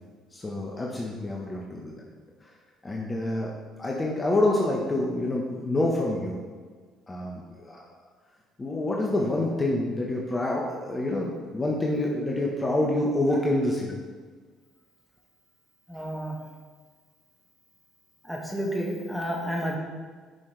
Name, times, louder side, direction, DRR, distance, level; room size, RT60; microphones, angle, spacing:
voice 1, 0.3-2.0 2.4-2.5 2.8-6.4 7.1-7.8 8.6-14.0, left 1 dB, 25° left, -2 dB, 1.3 m, -27 dB
voice 2, 15.9-16.4 18.2-19.8, equal, ahead, -2 dB, 2.0 m, -30 dB
10.5 x 5.8 x 3.4 m, 1.5 s
supercardioid pair, 65°, 0 cm